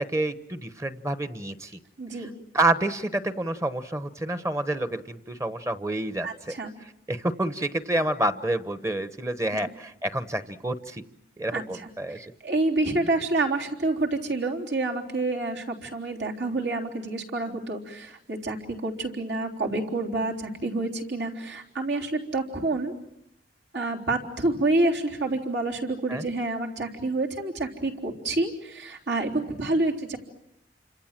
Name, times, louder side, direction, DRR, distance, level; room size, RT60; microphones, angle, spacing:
voice 1, 0.0-1.7 2.5-6.5 7.1-11.0 11.4-12.2 26.1-26.2, right 1 dB, 15° right, 11 dB, 1.0 m, -28 dB
voice 2, 2.0-2.3 6.2-6.7 11.5-11.9 12.4-22.9 23.7-30.2, right 2 dB, 75° right, 0 dB, 3.7 m, -28 dB
29.0 x 26.0 x 7.5 m, 0.79 s
head